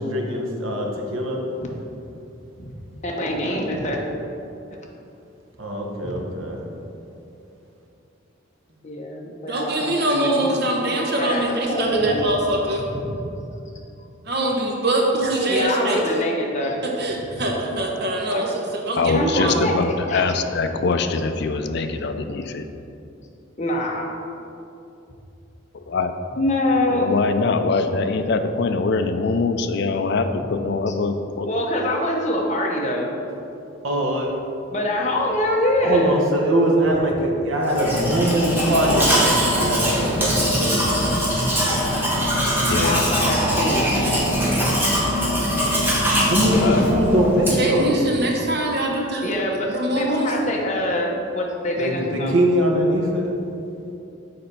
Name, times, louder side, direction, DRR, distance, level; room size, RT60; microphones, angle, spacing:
voice 1, 0.0-1.4 5.6-6.6 33.8-34.3 35.8-40.8 46.2-47.9 51.8-53.3, right 1 dB, 80° right, 0 dB, 1.1 m, -21 dB
voice 2, 3.0-4.0 6.0-6.1 8.8-10.8 11.2-12.4 12.9-13.2 15.5-16.8 17.2-17.5 18.3-18.5 19.1-20.2 23.6-24.1 26.3-27.2 30.4-30.5 30.9-31.0 31.4-33.1 34.7-36.2 38.1-38.3 39.2-39.5 40.1-40.3 40.7-41.1 42.8-43.8 49.2-52.4, left 1 dB, 35° left, -1 dB, 0.9 m, -25 dB
voice 3, 9.5-12.9 14.3-16.0 17.0-19.6 47.6-49.3 49.7-50.3, right 1 dB, 55° right, 0 dB, 1.0 m, -23 dB
voice 4, 19.0-22.6 25.7-26.1 26.9-31.5 42.4-43.0 46.5-46.9 47.5-47.7, left 4 dB, 55° left, 7 dB, 0.4 m, -23 dB
Domestic sounds home sounds, 37.7-47.8, equal, 10° right, 1.2 m, -21 dB
6.8 x 4.3 x 5.4 m, 2.8 s
head